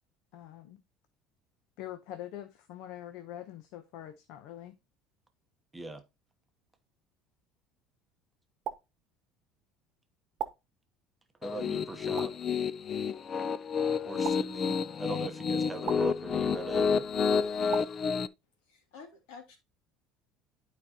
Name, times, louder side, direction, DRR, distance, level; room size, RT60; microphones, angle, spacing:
voice 1, 0.3-0.8 1.8-4.7, left 12 dB, 65° left, 0.8 m, -44 dB
sound 1, 8.6-8.8 10.4-10.5 12.2-12.3 14.2-14.4 15.8-16.0 17.7-17.9, right 9 dB, 40° right, 1.0 m, -35 dB
Piano, 11.4-18.3, left 6 dB, 25° left, 0.4 m, -30 dB
voice 2, 11.4-12.3 14.0-17.1, right 3 dB, 10° right, 0.9 m, -40 dB
voice 3, 18.7-19.6, left 5 dB, 90° left, 2.9 m, -50 dB
11.5 x 4.7 x 2.8 m
cardioid pair, 160°, 0 cm